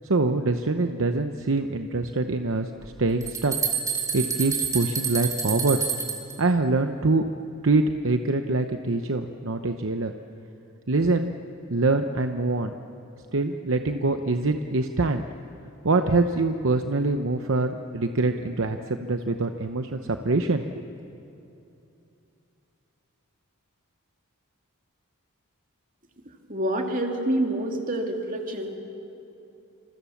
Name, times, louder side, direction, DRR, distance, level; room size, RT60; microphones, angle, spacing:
voice 1, 0.0-2.7 3.0-3.5 4.1-5.8 6.4-7.2 7.6-10.1 10.9-11.4 11.7-12.7 13.3-15.2 15.8-20.8, right 3 dB, 60° right, 7 dB, 0.8 m, -24 dB
sound 1, 2.8-6.3, right 6 dB, 15° right, 2.9 m, -28 dB
voice 2, 26.5-28.8, right 1 dB, 35° right, 2 dB, 2.7 m, -27 dB
29.0 x 27.0 x 7.2 m, 2.8 s
head